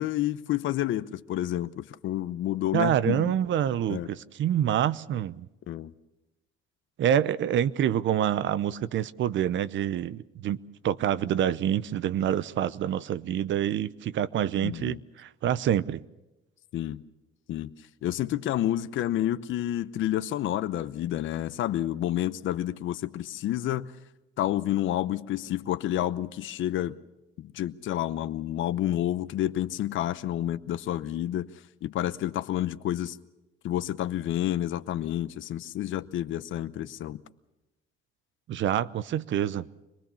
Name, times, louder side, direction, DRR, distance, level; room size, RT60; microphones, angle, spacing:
voice 1, 0.0-3.3 3.9-4.1 5.7-5.9 14.6-15.0 16.7-17.0 17.5-17.7 18.0-23.9 24.4-27.0 27.4-31.5 31.8-33.2 33.6-37.2, left 12 dB, 80° left, 0.9 m, -29 dB
voice 2, 2.7-5.5 7.0-10.6 10.8-16.0 38.5-39.7, right 10 dB, 70° right, 0.8 m, -27 dB
25.0 x 19.5 x 7.0 m
cardioid pair, 90°, 20 cm